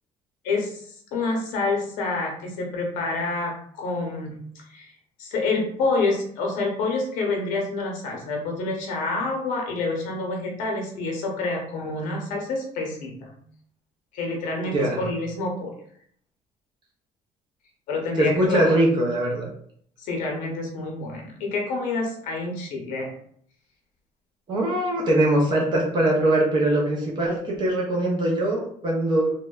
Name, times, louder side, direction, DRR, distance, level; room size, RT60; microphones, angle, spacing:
voice 1, 0.4-4.9 5.2-13.4 14.1-15.7 17.9-18.6 20.0-23.1, left 3 dB, 80° left, 1 dB, 0.7 m, -28 dB
voice 2, 18.2-19.5 24.5-29.3, right 1 dB, 35° right, -2 dB, 0.5 m, -22 dB
2.9 x 2.1 x 2.2 m, 0.64 s
cardioid pair, 165°, 13 cm